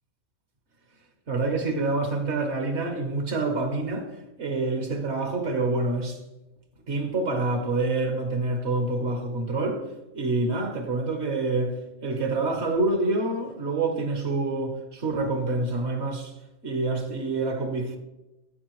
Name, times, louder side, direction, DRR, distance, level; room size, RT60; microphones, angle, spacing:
voice 1, 1.3-4.1 4.4-6.2 6.9-9.9 10.1-16.3 16.6-18.0, right 2 dB, 60° right, 1.5 m, -27 dB
13.0 x 4.9 x 3.1 m
omnidirectional pair, 1.3 m